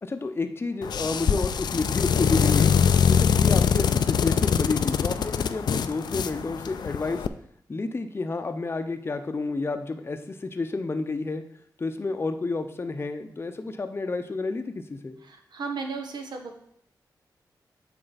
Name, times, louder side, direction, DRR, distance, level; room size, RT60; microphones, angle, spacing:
voice 1, 0.0-2.7 3.1-7.2 7.7-11.4 11.8-15.2, left 3 dB, 35° left, 7 dB, 0.6 m, -30 dB
sound 1, 0.8-7.3, left 7 dB, 75° left, 0.4 m, -23 dB
voice 2, 15.3-16.6, right 4 dB, 75° right, 4 dB, 1.1 m, -35 dB
7.7 x 4.4 x 4.0 m, 0.69 s
cardioid pair, 70°, 7 cm